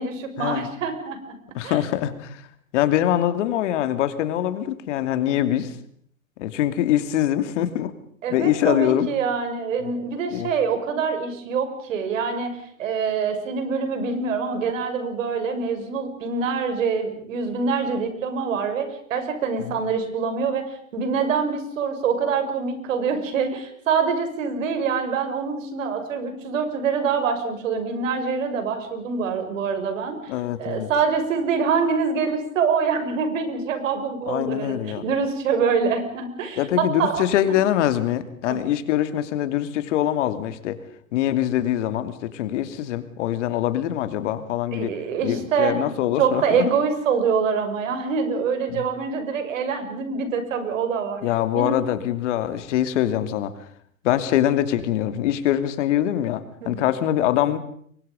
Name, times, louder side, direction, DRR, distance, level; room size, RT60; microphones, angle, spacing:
voice 1, 0.0-1.4 1.6-1.8 8.2-20.6 20.9-37.2 38.5-38.6 44.7-45.9 46.2-51.2 51.6-51.8 56.6-56.8, right 5 dB, 65° right, 7 dB, 6.4 m, -25 dB
voice 2, 1.5-2.4 2.7-5.8 6.4-7.9 8.3-9.1 10.3-10.5 19.6-19.8 30.3-30.9 34.3-35.1 36.6-40.8 41.1-45.0 45.2-46.7 48.7-48.9 51.2-53.6 54.0-57.6, left 12 dB, 60° left, 10 dB, 2.8 m, -23 dB
29.5 x 23.5 x 5.3 m, 0.63 s
hypercardioid pair, 110°, 41 cm